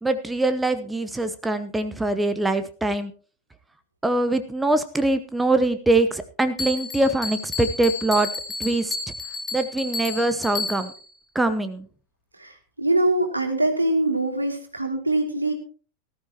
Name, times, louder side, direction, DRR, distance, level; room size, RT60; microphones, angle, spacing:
voice 1, 0.0-3.1 4.0-8.3 8.6-9.0 9.5-10.9 11.3-11.9, right 2 dB, 10° right, 10 dB, 0.9 m, -23 dB
Bell, 6.6-11.1, left 3 dB, 20° left, 2.6 m, -32 dB
voice 2, 12.4-15.5, right 2 dB, 80° right, 2 dB, 2.8 m, -23 dB
19.0 x 13.0 x 2.9 m, 0.39 s
figure-of-eight pair, 90°, 0 cm